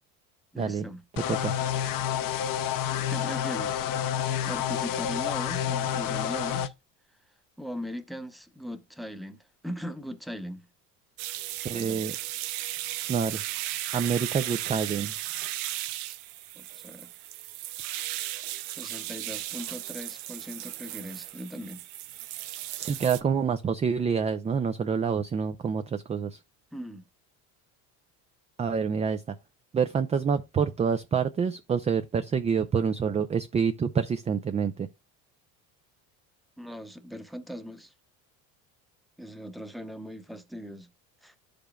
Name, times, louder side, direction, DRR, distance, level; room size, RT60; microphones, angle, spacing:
voice 1, 0.5-1.0 3.1-3.9 4.5-6.7 7.6-10.6 11.7-12.0 16.5-17.1 18.7-21.8 26.7-27.0 36.6-37.9 39.2-40.9 41.2-41.3, equal, ahead, 0.8 m, -39 dB
sound 1, 1.2-6.7, left 9 dB, 50° left, 0.7 m, -29 dB
sound 2, 11.2-23.2, right 15 dB, 75° right, 0.8 m, -36 dB
voice 2, 11.6-12.1 13.1-13.4 13.9-15.1 22.8-26.4 28.6-29.4 29.7-34.9, right 6 dB, 15° right, 0.3 m, -27 dB
13.0 x 5.1 x 2.3 m
supercardioid pair, 95°, 43 cm